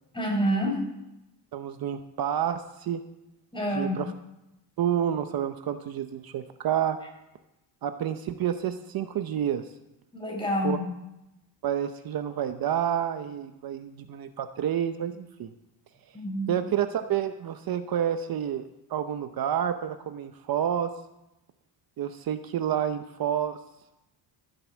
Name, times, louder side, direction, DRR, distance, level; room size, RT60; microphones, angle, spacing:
voice 1, 0.1-0.8 3.5-4.0 10.1-10.8 16.1-16.5, equal, 10° left, 0 dB, 4.6 m, -27 dB
voice 2, 1.5-3.0 3.7-4.1 4.8-7.0 7.8-9.7 10.6-10.8 11.6-15.5 16.5-18.6 18.9-20.9 22.0-23.6, right 9 dB, 55° right, 9 dB, 0.8 m, -29 dB
15.0 x 8.0 x 7.2 m, 0.92 s
cardioid pair, 130°, 43 cm